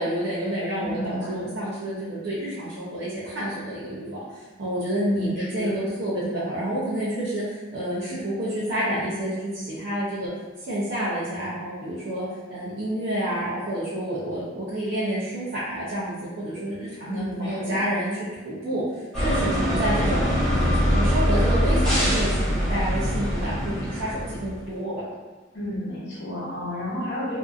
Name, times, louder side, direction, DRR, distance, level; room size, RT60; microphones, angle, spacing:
voice 1, 0.0-10.3 10.6-25.0, right 1 dB, 55° right, -9 dB, 0.6 m, -29 dB
voice 2, 0.8-1.5 5.1-5.7 17.1-17.8 25.5-27.4, left 1 dB, 60° left, -7 dB, 0.9 m, -31 dB
sound 1, 19.1-24.6, equal, ahead, 0.9 m, -23 dB
2.6 x 2.5 x 2.4 m, 1.3 s
head